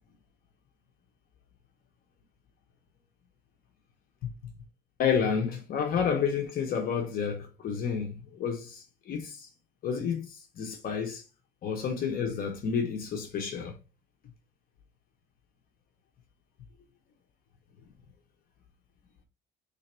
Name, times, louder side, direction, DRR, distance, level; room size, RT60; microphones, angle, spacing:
voice 1, 5.0-9.5 9.8-11.2 11.6-13.7, left 6 dB, 60° left, 1.0 m, -30 dB
3.4 x 2.8 x 4.3 m
cardioid pair, 110°, 17 cm